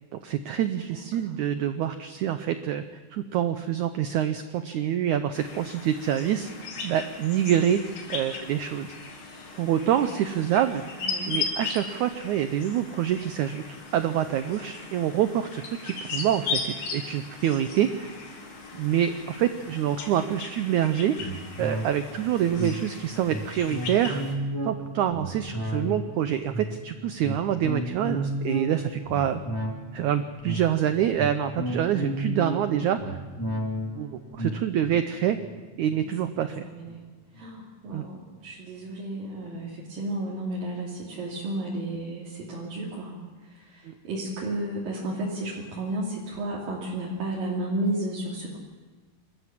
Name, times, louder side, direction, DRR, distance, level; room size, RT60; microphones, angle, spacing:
voice 1, 0.2-2.8 3.1-6.5 6.8-7.8 8.1-8.9 9.5-10.8 11.3-13.6 13.9-18.1 18.7-24.2 24.6-29.4 29.9-33.2 34.0-34.1 34.3-35.4 35.8-36.7 37.9-38.1 43.9-44.0, right 10 dB, 85° right, 9 dB, 1.7 m, -26 dB
voice 2, 0.9-1.4 9.8-10.1 11.0-11.3 36.0-36.1 36.4-37.0 37.3-43.1 43.5-48.6, right 1 dB, 65° right, -5 dB, 4.5 m, -33 dB
sound 1, 5.3-24.3, left 4 dB, 65° left, 3.9 m, -37 dB
sound 2, 21.2-36.9 37.3-37.4, right 1 dB, 10° left, 1.7 m, -34 dB
26.5 x 14.0 x 7.5 m, 1.4 s
omnidirectional pair, 4.5 m